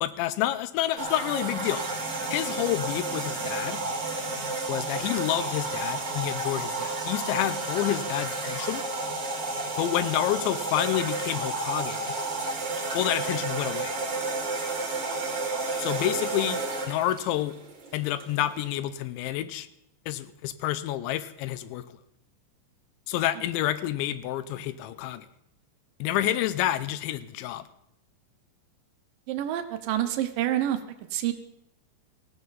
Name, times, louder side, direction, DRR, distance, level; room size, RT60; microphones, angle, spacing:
voice 1, 0.0-1.8 2.3-3.8 4.7-8.8 9.8-12.1 12.9-13.9 15.8-16.6 16.9-17.5 17.9-19.7 20.1-21.9 23.1-25.3 26.0-27.6, left 13 dB, 85° left, 14 dB, 3.0 m, -29 dB
sound 1, 1.0-18.7, right 3 dB, 35° right, 2.0 m, -31 dB
voice 2, 29.3-30.8 31.1-31.3, right 12 dB, 85° right, 7 dB, 1.9 m, -27 dB
18.5 x 15.0 x 4.0 m, 0.78 s
omnidirectional pair, 5.2 m